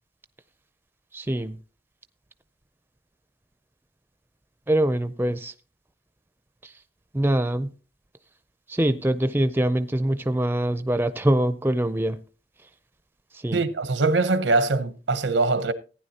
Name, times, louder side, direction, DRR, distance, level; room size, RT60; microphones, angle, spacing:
voice 1, 1.1-1.5 4.7-5.5 7.1-7.7 8.7-12.2 13.4-13.6, right 1 dB, 10° right, 0.4 m, -23 dB
voice 2, 13.5-15.7, right 3 dB, 85° right, 0.8 m, -22 dB
15.0 x 9.7 x 2.8 m
head